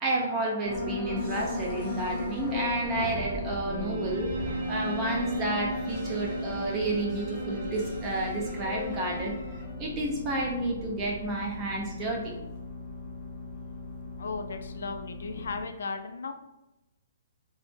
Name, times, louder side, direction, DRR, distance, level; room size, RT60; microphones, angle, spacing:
voice 1, 0.0-12.3, right 2 dB, 15° right, -1 dB, 0.4 m, -31 dB
sound 1, 0.6-15.6, left 3 dB, 25° left, 0.7 m, -37 dB
Bowed string instrument, 3.7-9.5, right 2 dB, 75° right, 0.6 m, -36 dB
voice 2, 14.2-16.3, left 4 dB, 70° left, 7 dB, 0.3 m, -36 dB
2.0 x 2.0 x 3.1 m, 0.96 s
hypercardioid pair, 175°, 0 cm